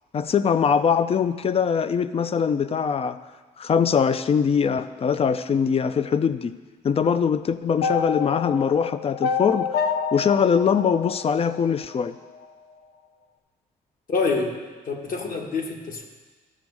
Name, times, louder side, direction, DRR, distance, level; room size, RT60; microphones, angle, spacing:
voice 1, 0.1-3.2 3.6-6.5 6.8-9.7 10.1-12.2, left 6 dB, 35° left, 13 dB, 0.5 m, -22 dB
sound 1, 7.8-12.0, left 6 dB, 75° left, 0.6 m, -28 dB
voice 2, 14.1-14.5 14.8-16.1, left 4 dB, 55° left, 2 dB, 1.4 m, -26 dB
13.5 x 5.2 x 4.7 m, 1.4 s
cardioid pair, 85°, 17 cm